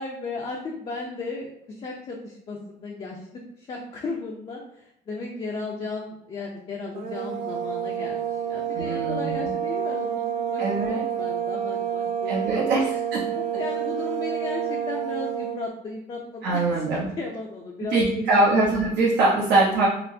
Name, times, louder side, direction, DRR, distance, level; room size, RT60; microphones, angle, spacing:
voice 1, 0.0-3.3 3.6-12.9 13.3-16.6 16.9-18.6, left 3 dB, 35° left, -2 dB, 0.5 m, -35 dB
sound 1, 6.9-15.7, right 9 dB, 50° right, 0.5 m, -29 dB
voice 2, 8.7-9.5 10.6-11.0 12.2-12.9 13.1-13.2 16.4-17.1 17.9-19.9, right 2 dB, 80° right, -7 dB, 0.9 m, -22 dB
4.2 x 2.0 x 2.6 m, 0.74 s
cardioid pair, 110°, 17 cm